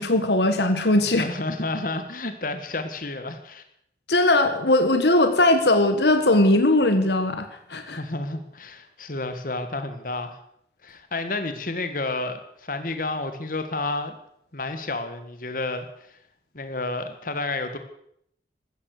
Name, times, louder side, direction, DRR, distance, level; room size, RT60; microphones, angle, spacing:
voice 1, 0.0-1.3 4.1-8.0, left 1 dB, 75° left, 8 dB, 1.6 m, -20 dB
voice 2, 1.2-3.6 7.9-10.4 10.8-14.2 14.5-16.2 16.5-17.8, left 2 dB, 50° left, 8 dB, 1.7 m, -30 dB
15.5 x 13.5 x 6.6 m, 0.72 s
head